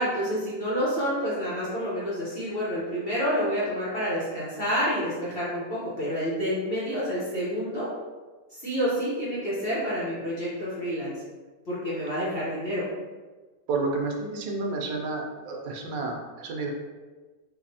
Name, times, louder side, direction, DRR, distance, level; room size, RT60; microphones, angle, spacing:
voice 1, 0.0-7.9 8.5-11.1 11.6-12.8, equal, 40° left, -8 dB, 1.0 m, -28 dB
voice 2, 13.7-16.7, right 3 dB, 80° right, 1 dB, 1.3 m, -30 dB
3.9 x 2.6 x 2.7 m, 1.3 s
omnidirectional pair, 1.9 m